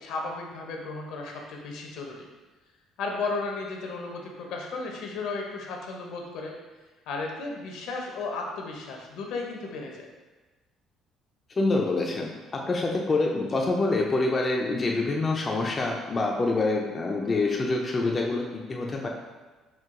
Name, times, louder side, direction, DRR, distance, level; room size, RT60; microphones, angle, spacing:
voice 1, 0.0-2.3 3.0-6.5 7.1-10.1, left 3 dB, 75° left, 1 dB, 0.7 m, -34 dB
voice 2, 11.6-19.1, left 2 dB, 25° left, -1 dB, 0.4 m, -26 dB
4.5 x 2.3 x 3.7 m, 1.2 s
cardioid pair, 135°, 0 cm